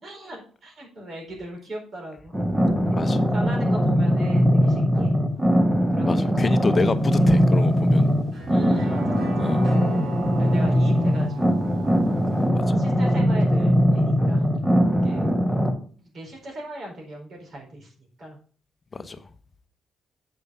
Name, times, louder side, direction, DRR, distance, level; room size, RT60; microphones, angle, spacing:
voice 1, 0.0-2.3 3.2-5.1 5.9-6.5 7.3-7.4 8.5-9.6 10.4-11.7 12.7-15.3 16.0-18.4, right 1 dB, 50° right, 4.3 m, -39 dB
sound 1, 2.3-15.7, equal, 10° right, 1.6 m, -21 dB
voice 2, 2.9-3.3 6.0-8.1 9.4-9.6 12.5-12.8 18.9-19.2, left 3 dB, 35° left, 0.9 m, -27 dB
sound 2, 6.9-12.5, right 1 dB, 75° right, 5.3 m, -39 dB
8.1 x 5.4 x 5.6 m
cardioid pair, 85°, 0 cm